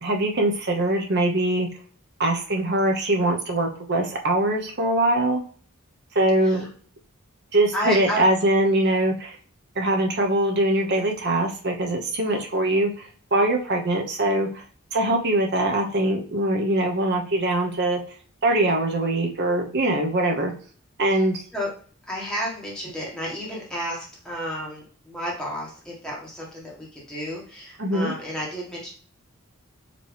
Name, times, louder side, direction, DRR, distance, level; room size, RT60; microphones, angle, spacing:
voice 1, 0.0-1.7 2.2-5.4 6.1-6.6 7.5-9.4 9.8-14.6 14.9-18.0 18.4-20.5 21.0-21.4 27.8-28.1, right 1 dB, 50° right, 2 dB, 1.0 m, -22 dB
voice 2, 7.7-8.3 12.2-12.4 21.1-21.2 21.5-21.7 22.1-28.9, equal, 5° left, -4 dB, 1.6 m, -31 dB
5.1 x 3.1 x 3.4 m, 0.43 s
head